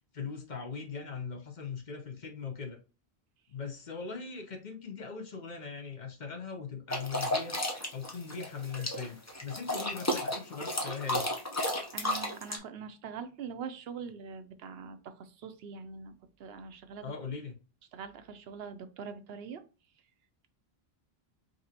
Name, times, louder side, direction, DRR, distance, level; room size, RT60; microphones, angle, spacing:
voice 1, 0.0-2.8 3.5-7.6 7.9-11.3 17.0-17.6, left 5 dB, 50° left, 0.8 m, -40 dB
sound 1, 6.9-12.6, left 1 dB, 20° left, 0.7 m, -33 dB
voice 2, 11.9-16.1 16.4-17.1 17.9-19.6, right 6 dB, 75° right, 0.8 m, -43 dB
5.0 x 2.9 x 2.8 m
omnidirectional pair, 1.1 m